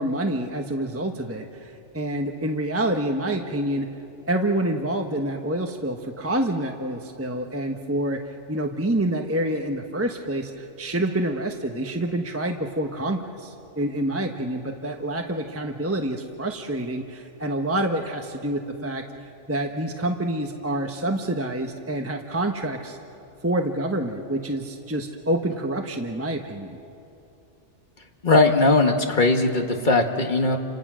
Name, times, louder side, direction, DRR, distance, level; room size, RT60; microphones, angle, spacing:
voice 1, 0.0-3.9 4.3-19.0 19.5-23.0 23.4-26.8, right 1 dB, 10° right, 3 dB, 1.1 m, -27 dB
voice 2, 28.2-30.6, left 3 dB, 40° left, 3 dB, 1.9 m, -19 dB
29.5 x 26.0 x 6.3 m, 2.8 s
omnidirectional pair, 1.2 m